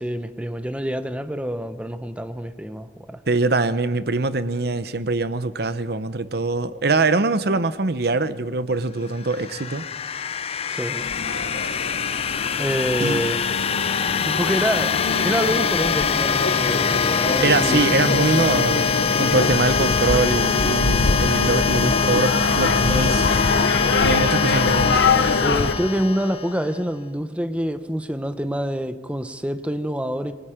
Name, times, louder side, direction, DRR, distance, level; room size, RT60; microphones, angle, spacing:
voice 1, 0.0-3.2 10.7-11.1 12.6-13.4 14.2-17.9 19.1-19.5 22.7-23.3 25.4-30.3, equal, 5° right, 0.9 m, -27 dB
voice 2, 3.3-9.8 13.0-13.2 17.4-23.3 24.0-25.0, right 3 dB, 65° right, 0.9 m, -23 dB
sound 1, 9.1-26.8, left 6 dB, 35° left, 0.6 m, -23 dB
sound 2, 11.0-25.7, left 3 dB, 80° left, 0.9 m, -25 dB
27.0 x 19.5 x 5.1 m
head